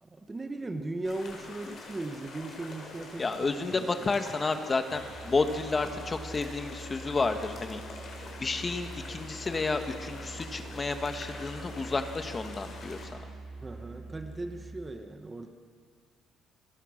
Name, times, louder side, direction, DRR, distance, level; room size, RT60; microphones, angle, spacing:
voice 1, 0.0-3.3 3.6-4.2 13.6-15.5, right 2 dB, 15° right, 6 dB, 1.2 m, -38 dB
sound 1, 1.0-13.0, left 3 dB, 35° left, 5.8 m, -45 dB
voice 2, 3.2-7.8 8.4-13.1, left 3 dB, 20° left, 7 dB, 1.4 m, -31 dB
Musical instrument, 4.9-14.8, right 3 dB, 35° right, 5.8 m, -45 dB
28.5 x 24.5 x 6.5 m, 2.1 s
cardioid pair, 170°, 0 cm